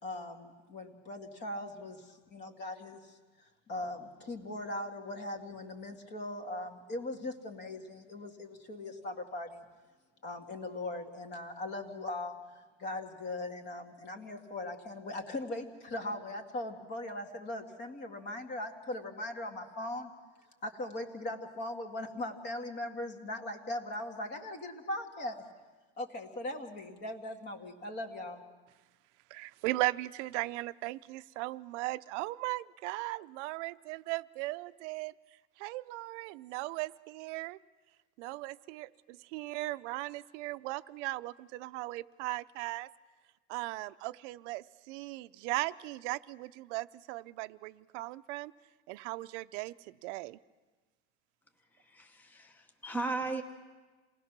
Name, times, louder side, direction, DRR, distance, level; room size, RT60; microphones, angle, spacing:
voice 1, 0.0-3.2 3.7-9.6 10.2-12.4 12.8-20.1 20.6-25.4 26.0-28.4, left 1 dB, 30° left, 5 dB, 1.9 m, -39 dB
voice 2, 29.3-35.1 35.6-37.6 38.2-42.9 43.5-48.5 48.9-50.4, right 19 dB, 85° right, 13 dB, 0.7 m, -37 dB
voice 3, 51.9-53.4, right 3 dB, 5° left, 6 dB, 0.9 m, -36 dB
28.0 x 19.0 x 6.0 m, 1.3 s
cardioid pair, 170°, 35 cm